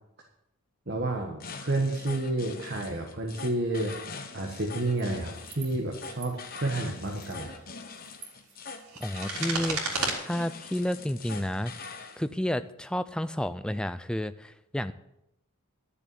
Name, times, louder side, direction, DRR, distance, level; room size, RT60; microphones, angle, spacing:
voice 1, 0.9-4.0 4.3-7.5, right 2 dB, 45° right, 1 dB, 1.3 m, -30 dB
sound 1, 1.4-12.2, left 4 dB, 40° left, 1.1 m, -43 dB
sound 2, 4.9-5.0 5.4-5.7 6.0-6.3 7.1-7.3 7.9-10.1, right 3 dB, 85° right, 3.1 m, -34 dB
voice 2, 9.0-9.8 10.2-11.7 12.2-14.9, left 1 dB, 5° left, 12 dB, 0.4 m, -31 dB
11.5 x 7.0 x 8.4 m, 0.82 s
head